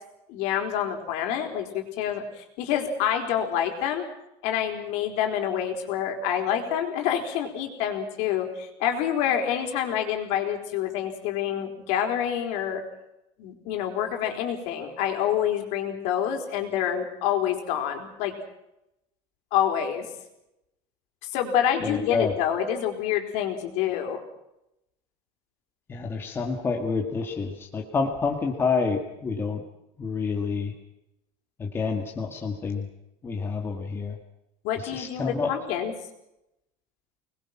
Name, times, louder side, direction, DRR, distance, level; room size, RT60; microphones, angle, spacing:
voice 1, 0.3-4.0 4.4-12.8 13.4-18.3 19.5-20.0 21.3-24.2 34.6-35.9, left 9 dB, 60° left, 4 dB, 4.5 m, -27 dB
voice 2, 21.8-22.3 25.9-29.6 30.0-30.7 31.6-32.9 33.2-34.1 34.8-35.5, left 4 dB, 15° left, 1 dB, 2.1 m, -28 dB
26.0 x 21.0 x 6.0 m, 0.86 s
cardioid pair, 180°, 13 cm